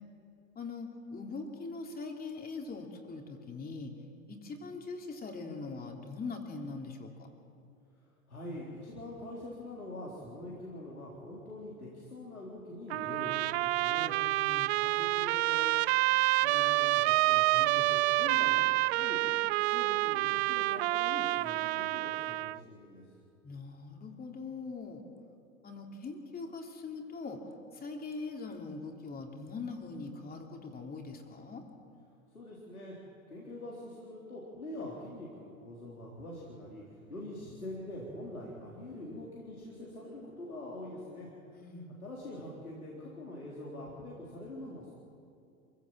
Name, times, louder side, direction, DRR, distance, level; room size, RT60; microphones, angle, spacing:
voice 1, 0.5-3.9 4.3-7.1 14.3-14.7 23.4-25.0 25.6-27.4 27.7-31.6 41.5-42.0, left 4 dB, 20° left, 2 dB, 3.3 m, -42 dB
voice 2, 8.3-14.1 14.8-15.7 16.4-23.0 32.3-32.9 33.3-41.3 42.0-44.9, left 1 dB, 85° left, -4 dB, 4.0 m, -44 dB
Trumpet, 12.9-22.6, right 18 dB, 50° right, 0.5 m, -28 dB
27.0 x 16.0 x 7.6 m, 2.4 s
figure-of-eight pair, 85°, 42 cm